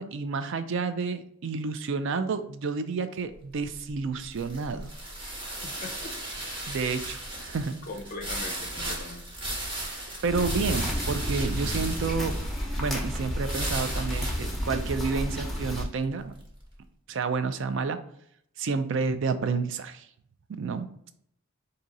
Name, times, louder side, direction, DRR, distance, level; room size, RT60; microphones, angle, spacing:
voice 1, 0.0-4.9 6.7-7.8 10.2-12.4 12.8-16.3 17.1-18.0 18.6-20.1 20.6-20.9, right 4 dB, 60° right, 11 dB, 0.4 m, -30 dB
sound 1, 3.3-16.6, right 1 dB, 25° right, 0.9 m, -37 dB
voice 2, 5.4-6.1 6.9-7.0 7.9-9.3, left 3 dB, 40° left, 4 dB, 0.5 m, -41 dB
sound 2, 10.3-15.8, equal, ahead, 0.7 m, -31 dB
4.1 x 2.7 x 3.8 m, 0.71 s
head